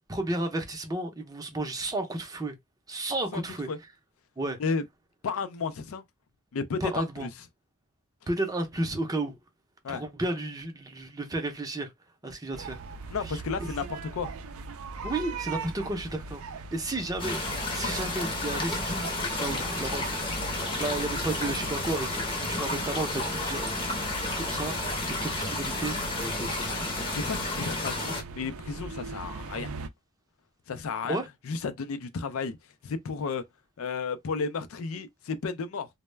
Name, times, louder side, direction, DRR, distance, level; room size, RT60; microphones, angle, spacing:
voice 1, 0.1-2.6 2.9-3.7 4.4-4.6 6.8-7.3 8.3-9.4 9.9-11.9 12.2-12.8 13.1-13.7 15.0-17.4 17.7-19.1 19.4-26.7 31.0-31.3, right 2 dB, 15° right, 0.5 m, -33 dB
voice 2, 5.2-6.0 6.5-7.3 9.8-10.0 13.1-14.3 27.0-29.7 30.7-31.2 31.4-32.6 32.8-33.4 33.8-35.9, left 5 dB, 70° left, 0.4 m, -33 dB
sound 1, 12.5-29.9, right 3 dB, 70° right, 0.4 m, -40 dB
sound 2, 17.2-28.2, left 2 dB, 25° left, 0.7 m, -31 dB
2.2 x 2.1 x 3.2 m
head